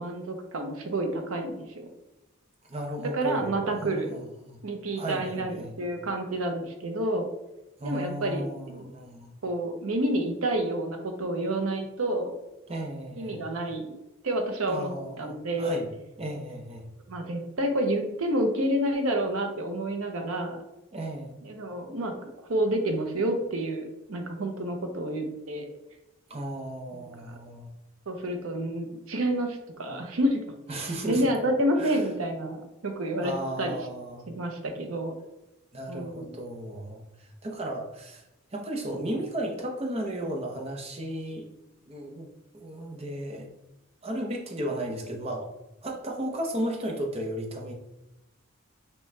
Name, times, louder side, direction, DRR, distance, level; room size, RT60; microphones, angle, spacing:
voice 1, 0.0-1.9 3.0-4.2 4.6-7.3 7.8-8.9 9.4-12.3 13.2-14.0 14.2-14.9 15.2-15.8 17.1-20.6 21.4-22.2 22.5-25.7 27.3-27.4 28.1-30.4 30.7-33.8 34.3-35.2 35.9-36.3, right 1 dB, 85° right, 5 dB, 0.7 m, -29 dB
voice 2, 2.7-4.6 5.0-5.8 7.8-9.3 12.7-13.5 14.7-15.9 16.2-16.9 20.9-21.5 26.3-27.7 30.7-31.3 31.8-32.0 33.2-34.3 35.7-38.2 38.5-41.5 41.9-42.3 42.5-43.5 44.0-45.5 45.8-47.7, right 1 dB, 30° right, 1 dB, 0.7 m, -34 dB
6.0 x 2.3 x 3.2 m, 0.96 s
head